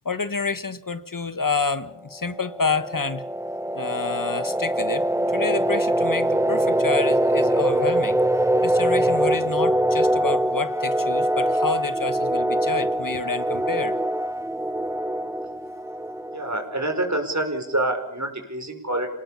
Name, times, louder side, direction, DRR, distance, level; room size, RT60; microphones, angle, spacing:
voice 1, 0.0-3.2 3.7-5.1 5.3-8.2 8.6-14.0, left 4 dB, 75° left, 12 dB, 1.5 m, -28 dB
sound 1, 2.3-16.9, right 1 dB, 10° right, 0.9 m, -23 dB
voice 2, 16.3-19.1, right 1 dB, 55° right, 3 dB, 5.6 m, -26 dB
28.5 x 18.0 x 7.2 m, 0.76 s
wide cardioid pair, 40°, 33 cm